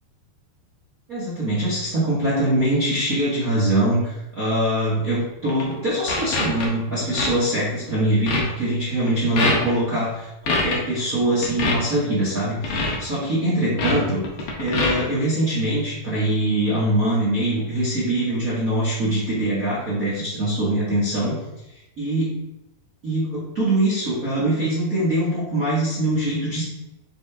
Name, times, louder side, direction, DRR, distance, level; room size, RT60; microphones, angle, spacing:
voice 1, 1.1-14.2 14.6-21.4 22.0-22.3 23.0-26.6, right 1 dB, 50° right, -8 dB, 1.0 m, -23 dB
sound 1, 5.5-5.7 6.1-6.7 7.1-7.3 7.7-7.9 8.3-8.4 9.1-9.2 9.4-9.7 10.5-10.8 11.4-11.8 12.6-13.0 13.7-14.0 14.2-15.0, left 3 dB, 70° left, 1.3 m, -23 dB
9.3 x 4.1 x 3.5 m, 0.91 s
omnidirectional pair, 4.5 m